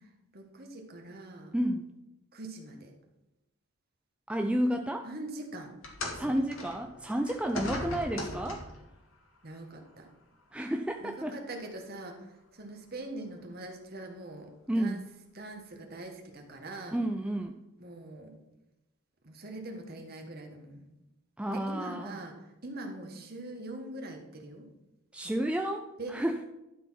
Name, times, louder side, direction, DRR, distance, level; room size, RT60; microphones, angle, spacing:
voice 1, 0.3-1.5 2.3-2.9 5.0-5.7 6.3-6.4 9.4-10.1 11.0-12.3 12.5-14.5 14.7-15.0 15.3-17.0 17.8-18.3 19.2-20.8 21.5-22.3 22.6-24.7 25.3-25.4 26.0-26.2, right 2 dB, 45° right, 3 dB, 1.4 m, -43 dB
voice 2, 1.5-1.8 4.3-5.1 6.2-8.7 10.5-11.4 14.7-15.1 16.9-17.6 21.4-22.2 25.1-26.4, right 1 dB, 5° right, 4 dB, 0.3 m, -31 dB
sound 1, 5.8-8.9 9.9-10.0 10.9-11.0, left 1 dB, 65° left, 1.8 m, -39 dB
11.5 x 4.3 x 5.7 m, 0.97 s
head